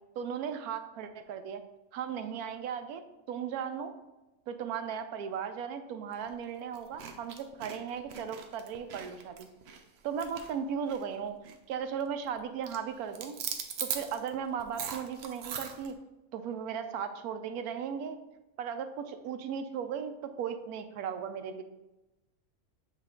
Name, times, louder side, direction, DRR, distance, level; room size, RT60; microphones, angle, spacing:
voice 1, 0.2-1.6 1.9-3.0 3.3-3.9 4.5-9.5 10.0-13.4 13.8-16.0 16.3-18.2 18.6-21.6, right 7 dB, 85° right, 8 dB, 1.1 m, -36 dB
sound 1, 6.1-6.3 6.7-11.2 11.4-11.7 12.0-12.4 12.6-15.9, right 7 dB, 60° right, 0.7 m, -40 dB
7.9 x 3.2 x 3.7 m, 1.0 s
omnidirectional pair, 1.6 m